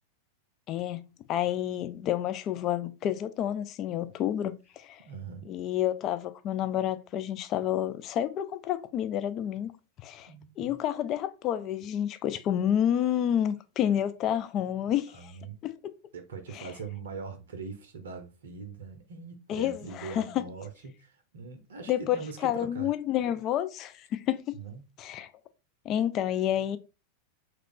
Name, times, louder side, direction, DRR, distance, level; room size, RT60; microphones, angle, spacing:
voice 1, 0.7-1.0 1.3-5.0 5.5-9.7 10.0-10.3 10.6-15.3 15.6-15.7 16.5-16.7 19.5-20.5 21.9-22.2 22.4-24.6 25.0-25.3 25.9-26.8, left 11 dB, 35° left, 0.3 m, -29 dB
voice 2, 5.1-5.5 10.3-10.8 15.1-15.6 16.1-22.9 24.6-24.8, right 4 dB, 65° right, 0.6 m, -42 dB
3.1 x 2.4 x 3.5 m
figure-of-eight pair, 90°, 0 cm